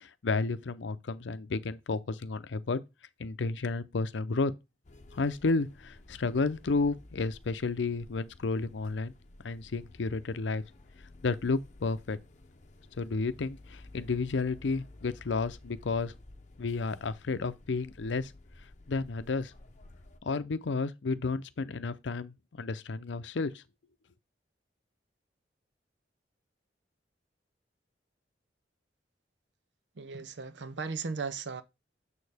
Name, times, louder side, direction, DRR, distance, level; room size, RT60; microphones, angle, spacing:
voice 1, 0.0-2.8 3.2-4.5 5.1-9.1 9.4-10.6 11.2-12.2 13.0-16.1 16.6-18.3 18.9-19.5 20.2-23.5, left 3 dB, 90° left, 0.6 m, -31 dB
sound 1, 4.8-20.2, left 2 dB, 40° left, 0.8 m, -53 dB
voice 2, 30.0-31.6, right 4 dB, 80° right, 0.6 m, -36 dB
6.9 x 6.5 x 3.4 m
head